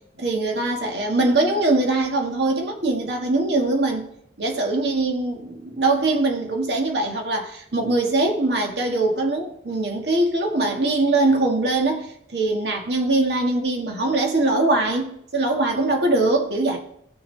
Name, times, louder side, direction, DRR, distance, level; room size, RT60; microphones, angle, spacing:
voice 1, 0.2-4.1 4.4-16.8, right 2 dB, 75° right, 1.6 m, -22 dB
15.5 x 6.6 x 3.3 m
head